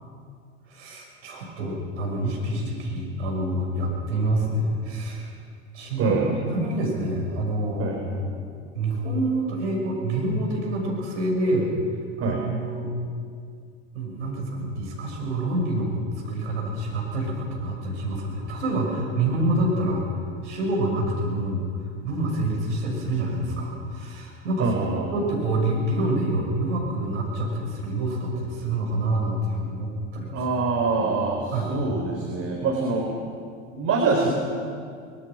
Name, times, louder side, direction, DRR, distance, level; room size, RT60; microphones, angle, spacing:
voice 1, 0.7-5.3 5.7-6.2 6.4-8.5 8.7-11.7 12.2-12.9 13.9-20.1 20.4-21.7 22.0-24.7 25.1-30.6 31.0-31.2 31.5-31.7, right 1 dB, 75° right, -1 dB, 6.3 m, -27 dB
voice 2, 6.0-6.3 7.8-8.0 12.2-12.4 24.6-25.1 30.3-33.1 33.7-34.3, right 4 dB, 40° right, 0 dB, 3.8 m, -24 dB
23.5 x 21.5 x 6.2 m, 2.2 s
hypercardioid pair, 80°, 36 cm